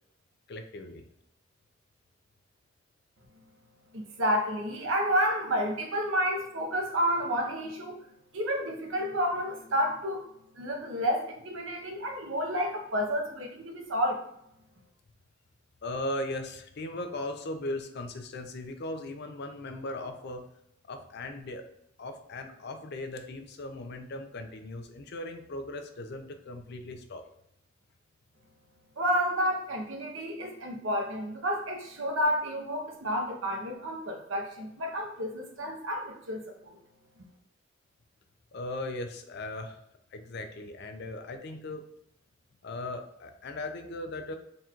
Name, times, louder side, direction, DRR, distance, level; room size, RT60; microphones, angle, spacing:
voice 1, 0.5-1.0 15.8-20.4 20.9-21.6 22.0-27.2 38.5-39.8 40.1-41.8 42.6-44.3, left 1 dB, 60° left, 6 dB, 0.5 m, -38 dB
voice 2, 3.9-8.0 8.3-10.3 10.5-14.3 29.0-36.8, equal, 85° right, 3 dB, 0.8 m, -30 dB
4.0 x 2.4 x 4.4 m, 0.74 s
head